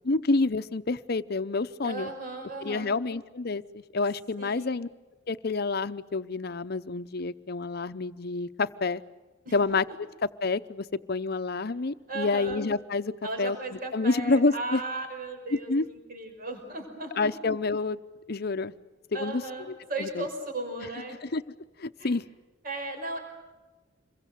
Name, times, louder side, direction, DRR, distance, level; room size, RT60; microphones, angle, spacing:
voice 1, 0.0-2.1 2.6-4.9 5.3-9.0 9.5-9.8 10.4-13.1 13.4-13.6 13.9-14.8 15.5-15.9 17.2-18.0 18.3-18.7 19.1-19.4 19.7-20.3 21.2-21.4 21.8-22.2, left 3 dB, 55° left, 13 dB, 0.8 m, -28 dB
voice 2, 1.8-3.0 4.4-4.7 9.5-9.6 12.1-12.6 13.2-15.7 16.1-17.3 19.1-21.2 22.0-22.2 22.6-23.2, right 2 dB, 50° right, 4 dB, 5.5 m, -36 dB
27.0 x 23.0 x 7.8 m, 1.2 s
head